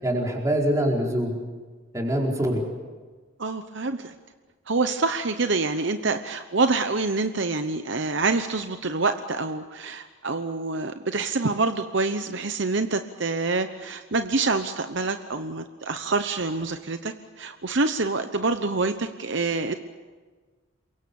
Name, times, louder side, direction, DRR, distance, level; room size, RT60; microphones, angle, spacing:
voice 1, 0.0-1.4 1.9-2.6, right 1 dB, 15° right, -1 dB, 4.7 m, -24 dB
voice 2, 3.4-4.1 4.7-19.7, right 3 dB, 55° right, 8 dB, 0.9 m, -26 dB
28.5 x 23.5 x 7.1 m, 1.4 s
head